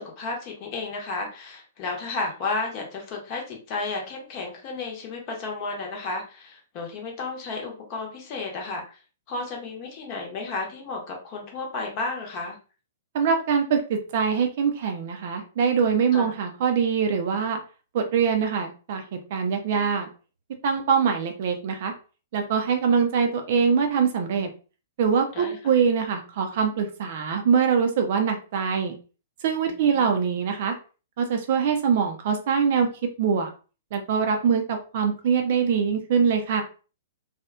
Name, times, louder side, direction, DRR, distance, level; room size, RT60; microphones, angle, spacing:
voice 1, 0.0-9.0 9.3-12.6 16.1-16.3 25.3-25.6 29.7-30.1, left 3 dB, 35° left, 0 dB, 0.9 m, -33 dB
voice 2, 13.1-17.6 17.9-19.0 19.3-20.1 20.6-21.9 22.3-24.5 25.0-29.0 29.4-30.8 31.2-32.9 33.2-33.5 33.9-36.6, right 6 dB, 50° right, 5 dB, 0.5 m, -23 dB
2.9 x 2.3 x 2.2 m, 0.35 s
figure-of-eight pair, 110°, 0 cm